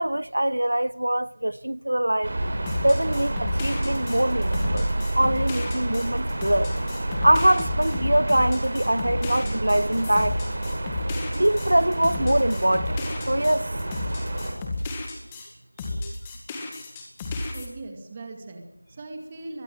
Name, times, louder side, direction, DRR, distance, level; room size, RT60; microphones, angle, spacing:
voice 1, 0.0-2.4 2.8-4.9 5.2-6.7 7.2-10.4 11.3-13.7 15.9-16.2, right 1 dB, 80° right, 0.8 m, -23 dB
sound 1, 2.2-14.5, right 1 dB, 30° right, 5.5 m, -29 dB
sound 2, 2.7-15.5 15.8-17.7, left 2 dB, 10° left, 2.0 m, -32 dB
Drum kit, 9.6-15.2, left 1 dB, 70° left, 5.4 m, -45 dB
voice 2, 17.5-19.6, right 2 dB, 15° right, 2.3 m, -39 dB
23.0 x 22.0 x 7.7 m
figure-of-eight pair, 175°, 0 cm